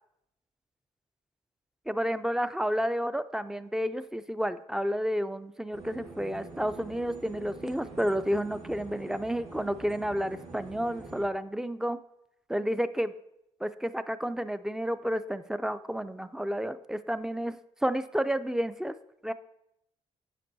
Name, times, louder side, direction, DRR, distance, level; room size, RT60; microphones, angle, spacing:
voice 1, 1.9-12.0 12.5-13.1 13.6-17.6 17.8-18.9 19.2-19.3, equal, 5° right, 13 dB, 0.3 m, -31 dB
sound 1, 5.7-11.2, right 3 dB, 60° right, 2.1 m, -46 dB
9.9 x 6.8 x 2.7 m, 0.82 s
cardioid pair, 90°, 12 cm